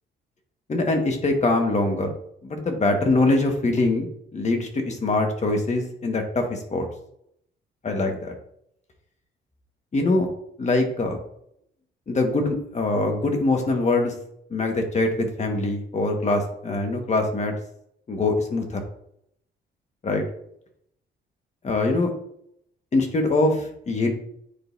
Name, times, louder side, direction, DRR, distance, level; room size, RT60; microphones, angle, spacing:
voice 1, 0.7-2.1 2.4-4.1 4.3-6.9 7.8-8.3 9.9-10.3 10.6-11.2 12.1-14.1 14.5-17.5 18.1-18.8 20.0-20.2 21.6-22.1 22.9-24.1, left 2 dB, 35° left, 3 dB, 1.6 m, -23 dB
9.9 x 3.9 x 2.7 m, 0.71 s
cardioid pair, 90°, 20 cm